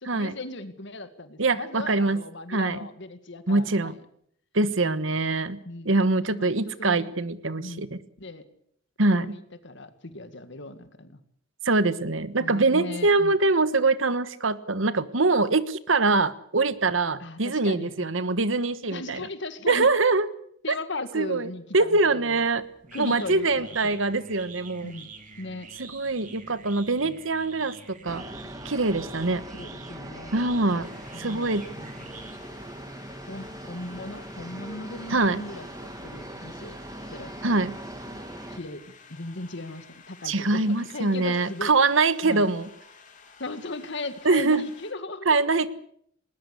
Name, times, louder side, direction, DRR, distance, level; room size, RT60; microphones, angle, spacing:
voice 1, 0.0-3.9 4.9-5.0 5.7-5.9 6.2-7.1 7.6-7.8 8.2-8.4 9.1-11.2 12.4-13.4 17.2-18.1 18.9-19.9 20.6-22.5 22.9-24.0 24.8-25.1 25.4-25.7 27.0-27.2 29.5-30.4 31.1-32.2 33.3-36.8 37.1-37.6 38.5-41.7 42.2-42.5 43.4-45.6, left 2 dB, 65° left, 11 dB, 2.0 m, -38 dB
voice 2, 1.4-2.2 2.5-2.8 3.5-4.0 4.5-8.0 9.0-9.4 11.6-19.3 19.7-20.3 21.1-21.5 21.7-22.6 23.0-24.9 25.8-28.2 28.6-29.4 30.3-30.9 31.2-31.7 35.1-35.4 37.4-37.8 40.2-42.7 44.2-44.7 45.3-45.7, right 3 dB, 75° right, 14 dB, 1.3 m, -24 dB
sound 1, 22.4-32.8, right 4 dB, 40° right, 3.1 m, -47 dB
sound 2, 28.1-38.6, right 1 dB, 20° right, 2.3 m, -41 dB
sound 3, 30.8-44.9, left 5 dB, 40° left, 3.1 m, -52 dB
20.0 x 19.5 x 8.3 m, 0.67 s
head